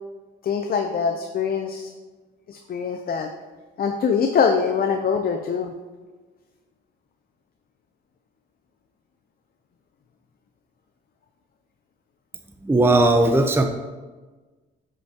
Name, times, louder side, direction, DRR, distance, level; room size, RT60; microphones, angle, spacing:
voice 1, 0.4-1.9 2.5-3.3 3.8-5.7, left 6 dB, 50° left, 4 dB, 0.6 m, -23 dB
voice 2, 12.6-13.7, right 2 dB, 10° right, 5 dB, 0.6 m, -17 dB
8.2 x 6.6 x 2.9 m, 1.3 s
cardioid pair, 90°, 20 cm